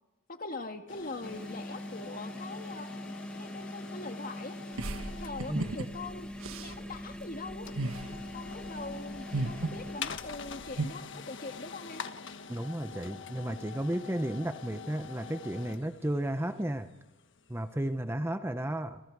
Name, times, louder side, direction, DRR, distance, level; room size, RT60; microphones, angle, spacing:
voice 1, 0.3-2.9 3.4-4.6 5.2-7.7 8.3-12.0, left 3 dB, 45° left, 5 dB, 2.0 m, -42 dB
sound 1, 0.9-17.7, left 6 dB, 60° left, 1.4 m, -46 dB
sound 2, 1.2-10.0, left 1 dB, 5° left, 1.7 m, -42 dB
sound 3, 4.8-10.9, right 2 dB, 85° right, 1.4 m, -37 dB
voice 2, 12.5-16.9 17.5-19.0, right 1 dB, 10° right, 9 dB, 0.8 m, -33 dB
29.0 x 27.5 x 4.8 m, 1.1 s
head